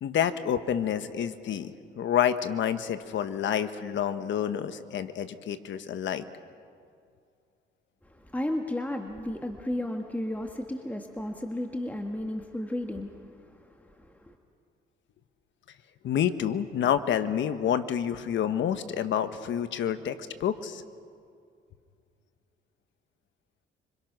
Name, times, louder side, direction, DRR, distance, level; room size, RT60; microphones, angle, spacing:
voice 1, 0.0-6.2 16.0-20.8, left 9 dB, 70° left, 11 dB, 1.3 m, -28 dB
voice 2, 8.1-14.3, left 1 dB, 10° left, 3 dB, 1.7 m, -34 dB
26.5 x 25.0 x 6.1 m, 2.3 s
cardioid pair, 90°, 20 cm